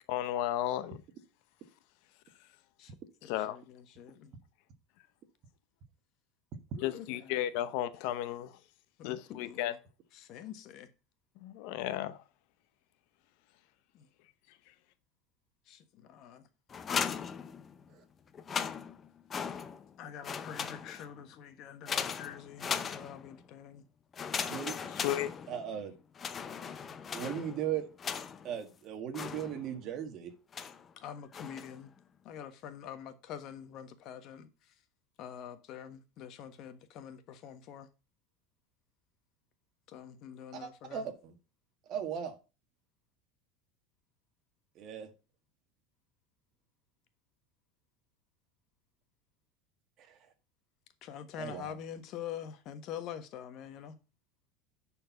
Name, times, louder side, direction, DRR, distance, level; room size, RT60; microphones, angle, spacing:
voice 1, 0.1-1.0 3.2-3.6 6.8-8.6 9.0-9.7 11.4-12.2 24.9-25.3, left 12 dB, 60° left, 0.8 m, -34 dB
voice 2, 2.8-4.3 6.7-7.4 9.0-9.8 10.1-10.9 13.9-14.1 15.7-16.5 20.0-23.8 31.0-31.9 32.2-34.8 35.2-37.9 39.9-41.1 51.0-54.0, left 9 dB, 45° left, 1.2 m, -46 dB
sound 1, 16.7-17.9 18.3-19.9 20.2-21.2 21.9-23.4 24.1-25.8 26.1-28.6 29.1-29.9 30.5-30.9 31.3-31.8, left 6 dB, 20° left, 0.7 m, -38 dB
voice 3, 24.5-24.9 25.5-25.9 27.1-27.8 28.4-30.3 40.5-41.3 41.9-42.3 44.8-45.1 51.4-51.8, right 9 dB, 40° right, 1.7 m, -37 dB
10.5 x 4.5 x 5.8 m
supercardioid pair, 150°, 0 cm